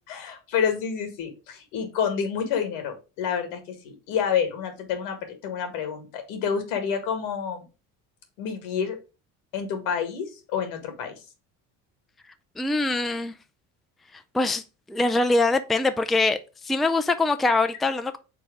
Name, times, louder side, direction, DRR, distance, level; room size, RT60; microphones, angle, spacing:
voice 1, 0.1-7.7 8.4-9.0 9.5-11.1, left 7 dB, 80° left, 1.8 m, -28 dB
voice 2, 12.6-13.3 14.1-14.6 14.9-18.2, left 2 dB, ahead, 0.4 m, -23 dB
4.7 x 4.0 x 5.0 m
supercardioid pair, 75°, 38 cm